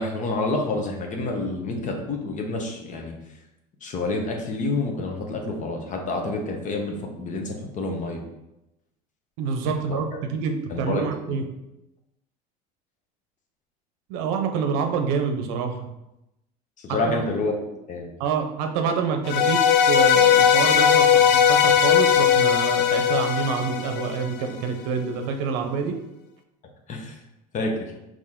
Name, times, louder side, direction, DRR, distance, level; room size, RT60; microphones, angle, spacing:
voice 1, 0.0-3.2 3.8-8.2 9.9-10.0 10.7-11.4 16.8-17.5 17.9-18.1 26.9-27.2 27.5-27.9, left 2 dB, 40° left, 2 dB, 1.0 m, -28 dB
voice 2, 9.4-11.4 14.1-15.9 17.0-17.2 18.2-25.9, right 6 dB, 75° right, 5 dB, 0.7 m, -27 dB
sound 1, 19.2-24.5, left 8 dB, 60° left, 0.5 m, -18 dB
4.4 x 3.0 x 3.6 m, 0.92 s
supercardioid pair, 90°, 19 cm